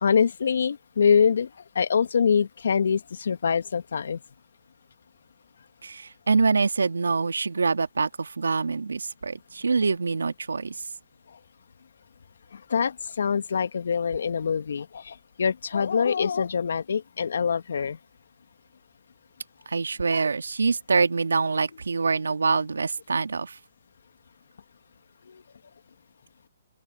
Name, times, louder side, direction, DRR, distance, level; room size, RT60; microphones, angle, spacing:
voice 1, 0.0-1.5 1.8-4.2 12.7-18.0, left 6 dB, 70° left, 1.9 m, -24 dB
voice 2, 5.8-10.7 19.7-23.6, right 4 dB, 85° right, 2.3 m, -25 dB
open air
hypercardioid pair, 135°, 0 cm